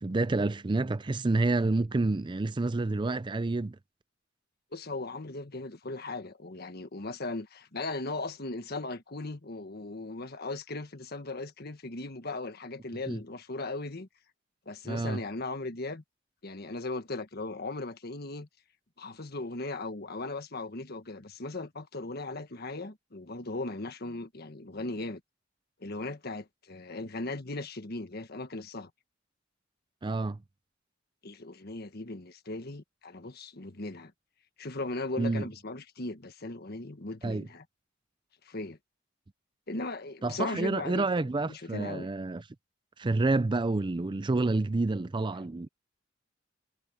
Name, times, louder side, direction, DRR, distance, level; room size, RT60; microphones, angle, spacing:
voice 1, 0.0-3.8 13.1-13.2 14.9-15.2 30.0-30.4 35.2-35.4 37.2-37.5 40.2-42.4 43.0-45.7, right 2 dB, 25° right, 0.5 m, -28 dB
voice 2, 4.7-14.1 14.6-16.0 16.4-18.5 19.0-25.2 25.8-28.9 31.2-34.1 34.6-37.6 38.4-38.8 39.7-42.1, left 2 dB, 55° left, 1.5 m, -38 dB
head